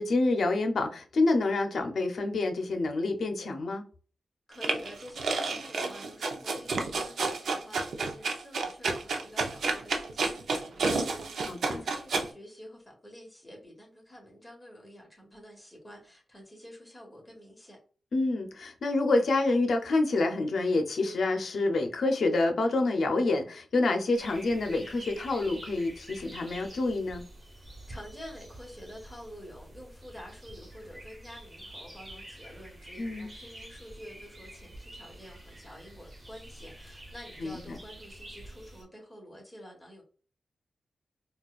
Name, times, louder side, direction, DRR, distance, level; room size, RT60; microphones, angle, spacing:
voice 1, 0.0-3.8 11.4-11.8 18.1-27.2 33.0-33.3 37.4-37.8, left 2 dB, 70° left, 0.6 m, -27 dB
voice 2, 4.5-17.8 27.9-40.0, equal, 10° left, 1.5 m, -48 dB
sound 1, 4.6-12.2, right 3 dB, 80° right, 0.6 m, -30 dB
sound 2, 24.1-38.8, right 1 dB, 25° right, 1.2 m, -48 dB
4.2 x 2.3 x 2.4 m
cardioid pair, 85°, 0 cm